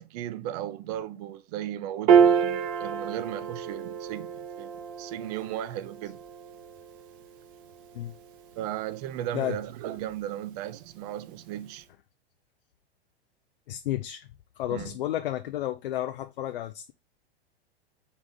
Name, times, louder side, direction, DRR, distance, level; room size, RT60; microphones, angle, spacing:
voice 1, 0.0-4.7 5.0-6.2 8.6-11.9 14.7-15.0, right 12 dB, 40° right, 0.5 m, -36 dB
Piano, 2.1-8.7, right 7 dB, 55° right, 0.9 m, -27 dB
voice 2, 13.7-14.3 14.6-16.9, left 13 dB, 60° left, 0.5 m, -32 dB
4.0 x 3.5 x 3.7 m
figure-of-eight pair, 95°, 31 cm